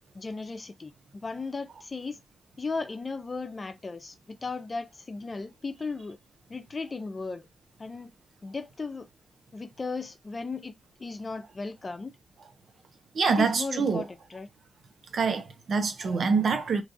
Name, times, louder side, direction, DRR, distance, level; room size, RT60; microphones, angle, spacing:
voice 1, 0.1-2.2 2.6-6.2 6.5-7.5 7.8-8.1 8.4-9.1 9.5-10.7 11.0-12.1 13.3-14.5, left 4 dB, 40° left, 0.6 m, -36 dB
voice 2, 13.1-14.0 15.1-16.8, right 5 dB, 65° right, 0.6 m, -25 dB
3.0 x 2.4 x 2.5 m
cardioid pair, 65°, 0 cm